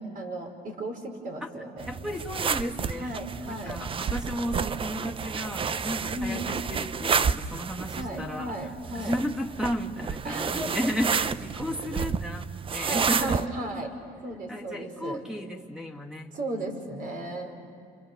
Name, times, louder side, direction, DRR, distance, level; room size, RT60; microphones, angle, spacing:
voice 1, 0.0-1.9 3.0-3.8 6.1-6.5 7.9-9.2 10.2-10.8 12.7-13.9 14.2-15.2 16.3-17.5, right 1 dB, 55° right, 3 dB, 5.3 m, -35 dB
Taking Takkies on and off, 1.8-13.5, right 6 dB, 30° right, 0.6 m, -31 dB
voice 2, 1.9-3.2 3.5-8.5 8.9-13.4 14.5-16.7, equal, 5° right, 2 dB, 2.4 m, -34 dB
30.0 x 27.5 x 7.0 m, 2.3 s
cardioid pair, 110°, 17 cm